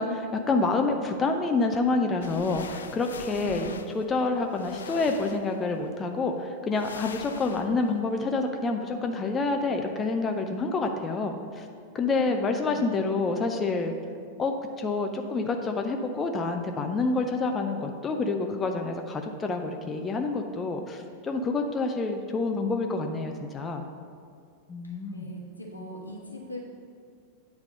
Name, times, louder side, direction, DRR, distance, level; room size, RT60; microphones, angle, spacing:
voice 1, 0.0-3.7 3.9-11.7 11.9-13.9 14.4-23.9 24.7-25.3, left 3 dB, 20° left, 4 dB, 0.5 m, -28 dB
sound 1, 2.2-5.9 6.7-8.0, left 6 dB, 70° left, 0.4 m, -43 dB
voice 2, 3.4-3.8 12.1-12.8 25.1-26.6, equal, 85° left, -2 dB, 1.2 m, -39 dB
8.8 x 3.5 x 6.5 m, 2.2 s
figure-of-eight pair, 90°, 0 cm